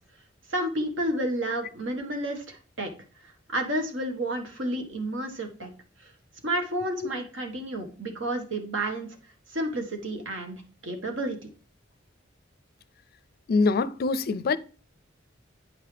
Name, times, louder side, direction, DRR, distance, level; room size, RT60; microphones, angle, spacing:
voice 1, 0.5-2.9 3.5-5.7 6.4-9.1 9.5-11.4, right 1 dB, 80° right, 1.5 m, -30 dB
voice 2, 13.5-14.6, left 4 dB, 50° left, 0.4 m, -24 dB
8.7 x 5.7 x 3.3 m
head